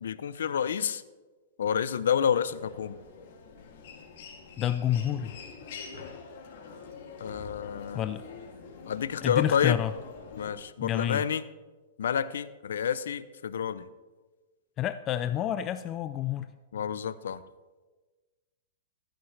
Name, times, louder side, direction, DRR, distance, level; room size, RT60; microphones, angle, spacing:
voice 1, 0.0-1.0 1.6-3.0 7.2-8.1 8.9-9.8 10.4-11.4 12.0-13.9 16.7-17.4, left 8 dB, 85° left, 15 dB, 0.5 m, -29 dB
Human voice, 2.5-10.5, left 5 dB, 55° left, 2.4 m, -45 dB
voice 2, 4.6-5.3 7.9-8.2 9.2-9.9 10.8-11.2 14.8-16.5, left 11 dB, 25° left, 12 dB, 0.3 m, -29 dB
15.0 x 10.0 x 3.3 m, 1.3 s
hypercardioid pair, 155°, 0 cm